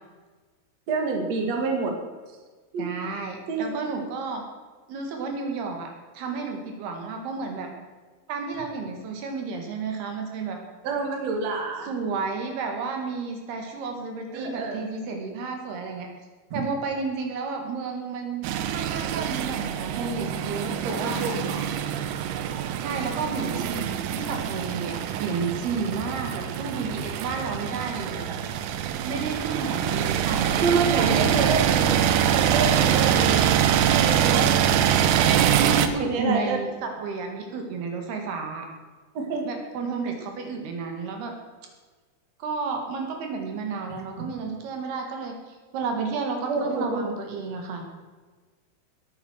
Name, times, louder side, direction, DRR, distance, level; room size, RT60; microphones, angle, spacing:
voice 1, 0.9-1.9 2.7-2.8 3.5-3.8 10.8-11.9 14.3-14.8 16.5-16.6 20.8-21.6 30.6-32.1 32.3-33.5 33.9-34.5 36.0-36.6 39.1-39.4 43.9-44.0 46.5-47.2, right 4 dB, 45° right, 2 dB, 3.0 m, -27 dB
voice 2, 2.8-4.4 4.9-5.9 6.1-7.7 8.3-10.6 11.9-16.1 16.5-21.2 22.8-28.4 29.0-31.4 34.3-34.6 35.1-38.7 39.5-41.3 42.4-47.9, right 4 dB, 75° right, 3 dB, 3.9 m, -32 dB
sound 1, 18.4-35.9, right 10 dB, 90° right, 3.1 m, -24 dB
19.5 x 9.0 x 6.4 m, 1.4 s
omnidirectional pair, 4.7 m